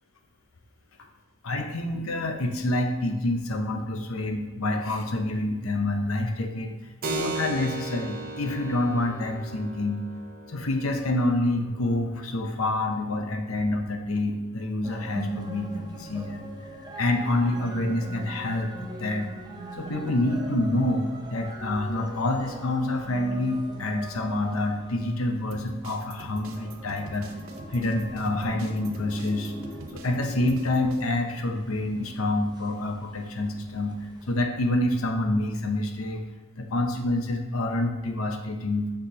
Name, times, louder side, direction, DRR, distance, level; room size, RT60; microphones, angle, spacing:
voice 1, 1.4-6.7 7.1-10.0 10.5-16.5 17.0-19.3 19.8-27.3 27.7-29.5 29.9-34.0 34.3-36.2 36.6-38.9, left 2 dB, 85° left, 4 dB, 0.8 m, -27 dB
Keyboard (musical), 7.0-15.2, right 2 dB, 50° right, 0.9 m, -38 dB
sound 1, 14.8-34.4, right 1 dB, 20° right, 0.7 m, -41 dB
sound 2, 25.5-31.0, right 2 dB, 75° right, 0.7 m, -45 dB
6.7 x 5.8 x 2.8 m, 1.3 s
head